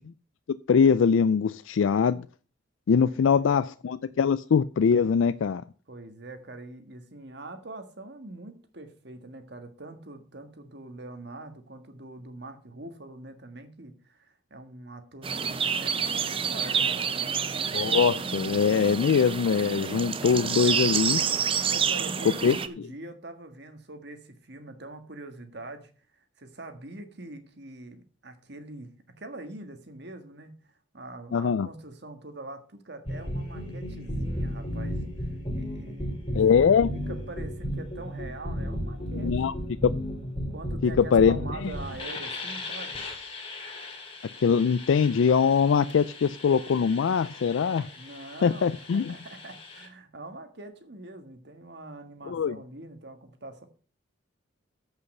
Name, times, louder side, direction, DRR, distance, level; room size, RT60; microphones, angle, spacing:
voice 1, 0.7-2.3 2.9-5.6 17.7-21.2 22.4-22.6 31.3-31.7 36.3-36.9 39.2-39.5 39.8-39.9 40.8-41.4 44.4-47.9 48.4-49.1 52.3-52.6, left 6 dB, 80° left, 0.4 m, -22 dB
voice 2, 3.0-3.6 5.9-17.1 21.7-36.4 36.9-39.6 40.5-43.0 48.0-53.7, right 2 dB, 60° right, 1.6 m, -44 dB
sound 1, 15.2-22.7, right 7 dB, 30° right, 0.6 m, -28 dB
sound 2, 33.1-49.9, left 1 dB, 30° left, 2.4 m, -35 dB
14.0 x 5.7 x 5.4 m
head